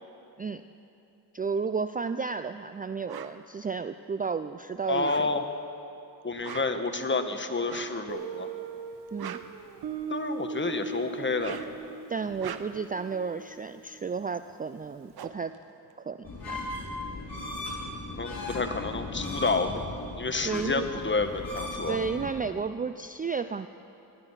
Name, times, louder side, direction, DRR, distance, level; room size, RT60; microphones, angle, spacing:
voice 1, 1.3-5.3 9.1-9.4 12.1-15.5 16.0-16.6 20.4-20.9 21.9-23.7, right 5 dB, 25° right, 11 dB, 0.3 m, -32 dB
sound 1, 3.1-3.4 4.9-5.6 6.3-6.9 7.6-8.0 8.9-10.2 11.2-11.8 12.3-12.9 14.5-14.6 14.8-16.5, right 9 dB, 65° right, 0.8 m, -42 dB
voice 2, 4.9-5.4 6.2-8.5 10.1-11.6 18.2-19.8 20.2-22.0, left 3 dB, 30° left, 7 dB, 1.3 m, -29 dB
Guitar, 8.1-14.7, right 6 dB, 85° right, 1.2 m, -40 dB
sound 2, 16.2-22.3, left 2 dB, 60° left, 4.8 m, -37 dB
20.0 x 12.5 x 5.7 m, 2.8 s
cardioid pair, 75°, 40 cm